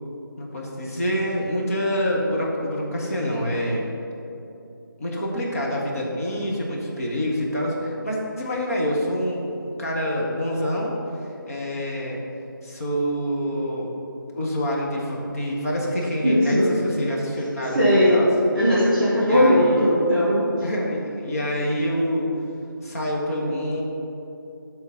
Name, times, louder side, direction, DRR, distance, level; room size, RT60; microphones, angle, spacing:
voice 1, 0.4-3.8 5.0-10.9 11.2-12.2 12.6-13.9 14.3-18.3 19.2-20.1 20.6-22.3 22.8-23.8, equal, 45° left, -3 dB, 1.2 m, -26 dB
voice 2, 16.2-16.7 17.7-18.2 18.5-20.4, equal, ahead, -17 dB, 1.0 m, -18 dB
8.2 x 3.8 x 5.8 m, 2.8 s
figure-of-eight pair, 165°, 12 cm